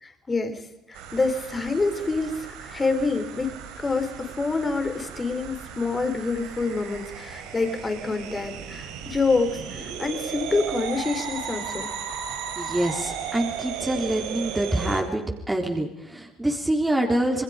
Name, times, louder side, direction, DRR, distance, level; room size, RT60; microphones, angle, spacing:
voice 1, 0.0-11.9, left 3 dB, 25° left, 7 dB, 4.1 m, -27 dB
sound 1, 0.9-15.0, right 7 dB, 85° right, 3.7 m, -36 dB
voice 2, 12.6-17.4, right 1 dB, 10° right, 1 dB, 3.8 m, -26 dB
27.5 x 21.0 x 5.2 m, 0.94 s
supercardioid pair, 75°, 0 cm